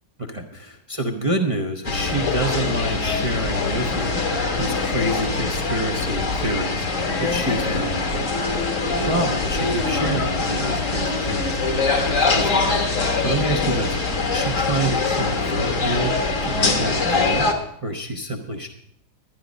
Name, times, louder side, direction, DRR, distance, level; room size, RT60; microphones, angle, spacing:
voice 1, 0.2-8.5 9.0-11.6 12.0-16.1 16.4-17.5 17.8-18.7, right 1 dB, 30° right, 2 dB, 0.6 m, -28 dB
sound 1, 1.8-17.5, left 3 dB, 50° left, 1.6 m, -23 dB
12.0 x 11.0 x 5.1 m, 0.72 s
omnidirectional pair, 1.8 m